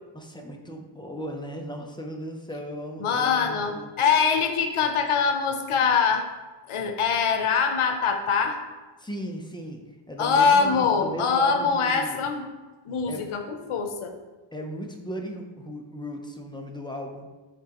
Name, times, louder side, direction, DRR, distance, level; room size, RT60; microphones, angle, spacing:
voice 1, 0.1-3.9 9.0-12.2 13.1-13.3 14.5-17.3, equal, 10° left, 2 dB, 0.5 m, -36 dB
voice 2, 3.0-6.3 6.7-8.6 10.2-12.5 12.9-14.1, left 5 dB, 85° left, 5 dB, 0.7 m, -23 dB
9.8 x 3.5 x 2.9 m, 1.2 s
wide cardioid pair, 155°, 49 cm